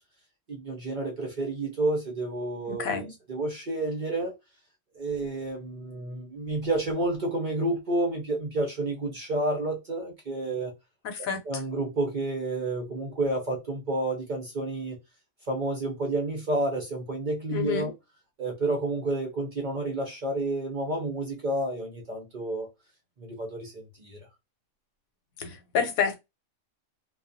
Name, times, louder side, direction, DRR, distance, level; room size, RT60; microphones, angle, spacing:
voice 1, 0.5-4.3 4.9-10.7 11.4-15.0 15.5-17.9 18.4-22.7 23.2-24.2, right 2 dB, 50° right, 0.6 m, -30 dB
voice 2, 2.7-3.1 11.0-11.4 17.5-17.9 25.4-26.2, left 6 dB, 90° left, 1.1 m, -28 dB
2.3 x 2.2 x 2.5 m
omnidirectional pair, 1.4 m